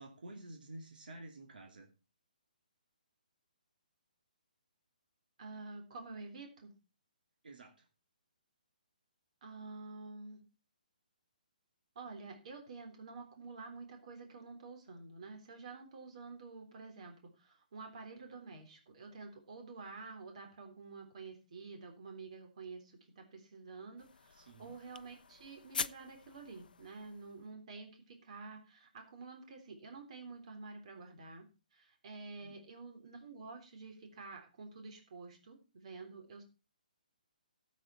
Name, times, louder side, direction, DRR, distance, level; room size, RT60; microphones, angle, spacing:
voice 1, 0.0-1.9 7.4-7.9 24.3-24.8 32.4-32.5, right 1 dB, 80° right, 3 dB, 2.9 m, -51 dB
voice 2, 5.4-6.7 9.4-10.4 12.0-36.4, right 4 dB, 45° right, 4 dB, 3.6 m, -49 dB
sound 1, 24.0-27.5, left 6 dB, 80° left, 0.5 m, -45 dB
13.0 x 8.3 x 4.4 m, 0.31 s
hypercardioid pair, 165°, 5 cm